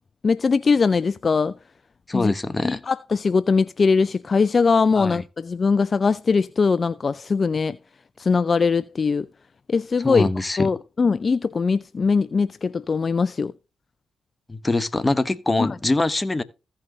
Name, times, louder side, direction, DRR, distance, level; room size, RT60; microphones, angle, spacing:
voice 1, 0.2-1.5 2.1-2.3 2.6-7.8 8.2-9.3 9.7-10.3 10.6-13.5 15.6-15.7, left 4 dB, 45° left, 0.3 m, -21 dB
voice 2, 2.1-2.8 4.9-5.2 10.0-10.7 14.5-16.4, left 2 dB, 25° left, 1.0 m, -23 dB
15.5 x 5.6 x 2.8 m
hypercardioid pair, 45°, 0 cm